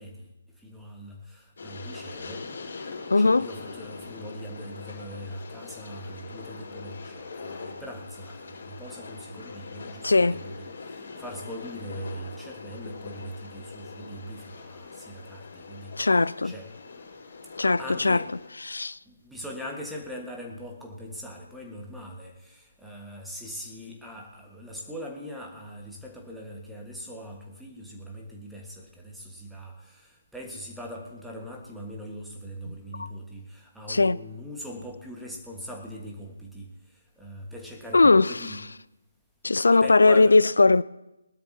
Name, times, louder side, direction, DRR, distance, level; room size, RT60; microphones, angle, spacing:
voice 1, 0.0-2.5 3.2-16.1 16.4-16.7 17.6-18.3 19.0-38.6 39.7-40.4, equal, ahead, 1.6 m, -41 dB
Train, 1.6-18.5, left 4 dB, 45° left, 4.2 m, -42 dB
voice 2, 3.1-3.5 10.0-10.4 16.0-16.5 17.6-18.2 18.6-19.0 32.7-33.1 33.9-34.2 37.9-38.6 39.4-40.8, left 3 dB, 60° left, 0.4 m, -20 dB
22.0 x 12.5 x 2.9 m
figure-of-eight pair, 145°, 0 cm